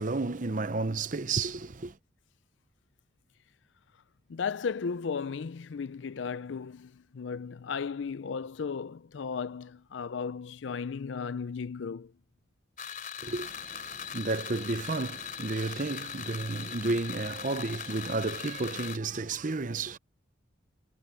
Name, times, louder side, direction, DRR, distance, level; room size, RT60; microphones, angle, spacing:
voice 1, 0.0-2.0 13.2-20.0, right 3 dB, 45° right, 0.8 m, -32 dB
voice 2, 4.3-12.1, left 5 dB, 70° left, 0.5 m, -35 dB
sound 1, 12.8-19.0, left 8 dB, 45° left, 3.4 m, -40 dB
head